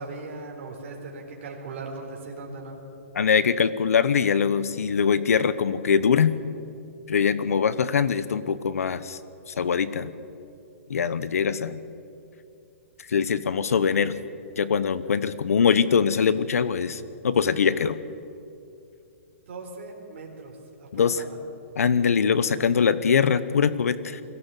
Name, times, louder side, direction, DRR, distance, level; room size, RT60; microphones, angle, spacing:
voice 1, 0.0-2.8 19.5-21.4, right 3 dB, 50° right, 0 dB, 3.9 m, -39 dB
voice 2, 3.1-6.3 7.1-9.2 9.5-10.1 10.9-11.8 13.1-14.1 14.6-18.0 20.9-21.2 21.8-24.2, left 6 dB, 85° left, 15 dB, 1.0 m, -22 dB
22.0 x 14.5 x 8.4 m, 2.6 s
hypercardioid pair, 160°, 8 cm